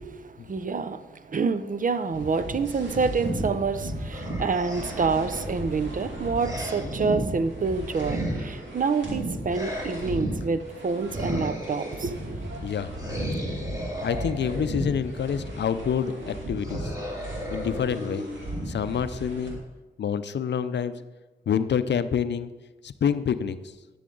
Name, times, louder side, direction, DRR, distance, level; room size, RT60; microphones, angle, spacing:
voice 1, 0.0-12.5, right 4 dB, 45° right, 11 dB, 0.6 m, -28 dB
sound 1, 2.1-19.5, right 1 dB, 85° right, 2.3 m, -34 dB
sound 2, 4.1-5.2 6.4-7.1 7.9-8.8 9.5-10.4 11.1-12.1 13.0-15.0 16.6-19.0, equal, 20° right, 2.4 m, -37 dB
voice 2, 12.6-12.9 14.0-16.9 17.5-18.3 18.7-19.6 20.0-20.9 21.5-22.5 22.8-23.6, left 7 dB, 70° left, 13 dB, 0.5 m, -27 dB
11.0 x 6.9 x 3.9 m, 1.2 s
cardioid pair, 55°, 19 cm